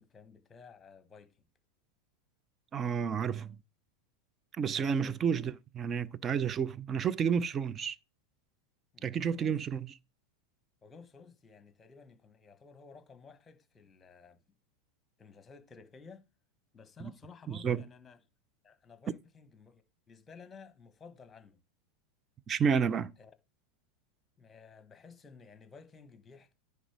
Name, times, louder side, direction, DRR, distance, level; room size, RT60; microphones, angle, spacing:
voice 1, 0.0-1.4 4.7-5.2 8.9-9.6 10.8-14.4 15.2-16.2 16.7-18.2 18.6-21.6 23.2-23.3 24.4-26.5, left 5 dB, 20° left, 1.5 m, -54 dB
voice 2, 2.7-3.6 4.6-8.0 9.0-9.9 17.0-17.1 17.5-17.8 22.5-23.1, right 7 dB, 30° right, 0.6 m, -31 dB
10.0 x 3.6 x 6.3 m
hypercardioid pair, 90°, 0 cm